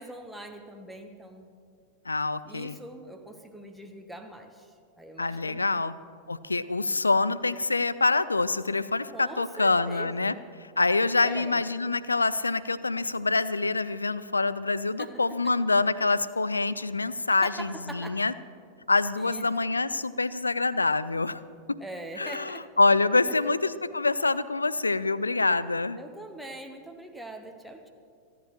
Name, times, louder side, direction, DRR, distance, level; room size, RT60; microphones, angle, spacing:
voice 1, 0.0-1.5 2.4-5.8 9.1-10.4 11.2-11.6 15.0-15.6 17.4-18.2 19.2-19.5 19.9-20.0 21.8-22.7 23.3-23.5 25.9-27.9, right 1 dB, ahead, 3 dB, 1.0 m, -43 dB
voice 2, 2.1-2.8 5.2-5.9 6.3-10.3 10.8-18.3 18.9-21.4 21.7-21.8 22.2-26.0, left 3 dB, 80° left, 17 dB, 0.4 m, -26 dB
28.0 x 10.0 x 3.1 m, 2.3 s
figure-of-eight pair, 90°, 0 cm